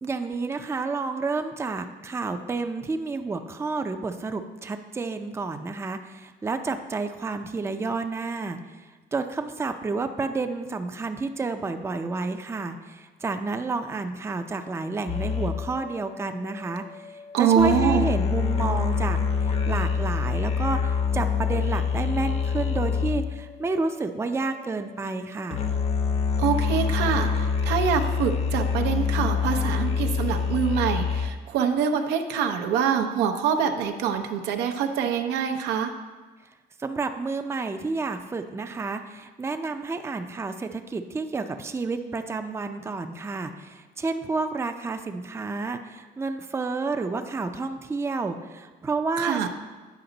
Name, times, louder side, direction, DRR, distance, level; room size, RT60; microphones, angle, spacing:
voice 1, 0.0-25.7 36.8-49.5, right 3 dB, 15° right, 7 dB, 0.5 m, -30 dB
sound 1, 15.1-23.5 25.5-31.3, left 6 dB, 40° left, 0.8 m, -26 dB
voice 2, 17.3-18.1 26.4-35.9 49.2-49.5, right 7 dB, 85° right, 5 dB, 0.7 m, -25 dB
9.3 x 5.0 x 3.9 m, 1.3 s
cardioid pair, 110°, 17 cm